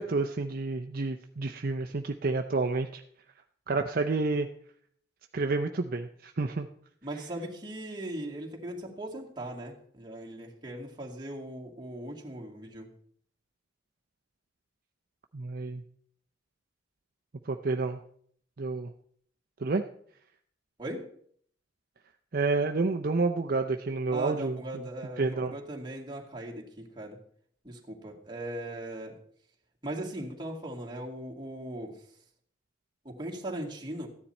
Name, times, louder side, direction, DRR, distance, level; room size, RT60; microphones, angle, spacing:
voice 1, 0.0-3.0 3.7-4.5 5.3-6.7 15.3-15.8 17.5-18.0 18.6-18.9 19.6-19.8 22.3-24.6 25.2-25.5, right 3 dB, 55° right, 5 dB, 0.6 m, -29 dB
voice 2, 7.0-12.9 20.8-21.1 24.1-27.2 27.6-29.2 29.8-32.0 33.0-34.1, right 1 dB, 25° right, -2 dB, 2.2 m, -39 dB
14.5 x 9.8 x 4.3 m, 0.62 s
head